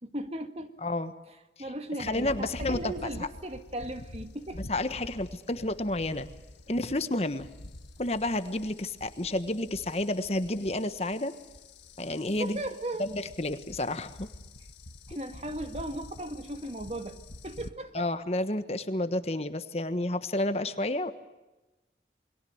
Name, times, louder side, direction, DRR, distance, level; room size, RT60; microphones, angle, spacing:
voice 1, 0.0-0.7 1.6-4.6 12.3-13.1 15.1-17.2 17.4-18.1, right 1 dB, 35° right, 8 dB, 1.9 m, -37 dB
voice 2, 0.8-1.1 2.0-3.3 4.7-6.3 6.7-7.5 8.0-11.3 12.0-12.6 13.0-14.3 17.9-21.1, left 1 dB, 35° left, 11 dB, 1.3 m, -30 dB
sound 1, 2.1-17.7, left 1 dB, 85° left, 1.6 m, -47 dB
29.0 x 22.5 x 8.0 m, 1.1 s
head